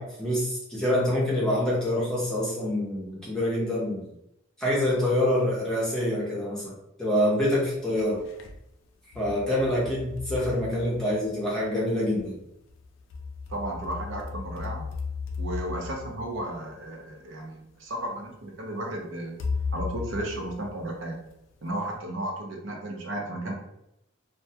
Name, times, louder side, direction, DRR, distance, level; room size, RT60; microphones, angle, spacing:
voice 1, 0.0-4.1 4.6-6.7 7.0-8.2 9.1-12.3, left 1 dB, 5° left, -7 dB, 0.7 m, -26 dB
sound 1, 7.6-8.6 9.1-11.5 12.7-17.1 17.9-18.0 19.4-21.3, left 4 dB, 80° left, 0.3 m, -36 dB
voice 2, 13.5-14.8 15.4-19.4 19.7-21.2 21.6-23.5, right 1 dB, 80° right, 0 dB, 0.6 m, -34 dB
2.2 x 2.1 x 2.7 m, 0.82 s
head